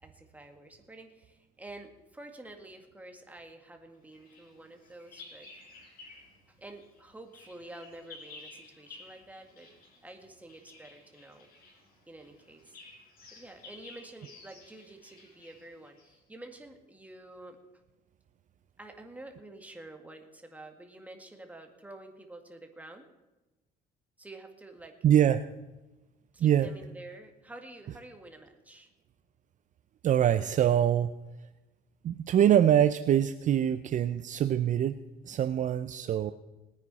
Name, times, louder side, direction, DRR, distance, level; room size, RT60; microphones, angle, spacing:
voice 1, 0.0-5.5 6.5-9.7 10.0-11.5 12.1-12.8 13.3-17.6 18.8-23.1 24.2-25.0 26.3-28.9, right 2 dB, 10° right, 4 dB, 1.9 m, -49 dB
Bird vocalization bird call bird song, 4.1-6.4 6.7-16.2, left 3 dB, 60° left, 5.7 m, -53 dB
voice 2, 25.0-25.4 26.4-26.7 30.0-31.1 32.0-35.0 35.2-36.3, right 10 dB, 50° right, 11 dB, 0.5 m, -24 dB
20.0 x 9.5 x 4.2 m, 1.1 s
cardioid pair, 110°, 17 cm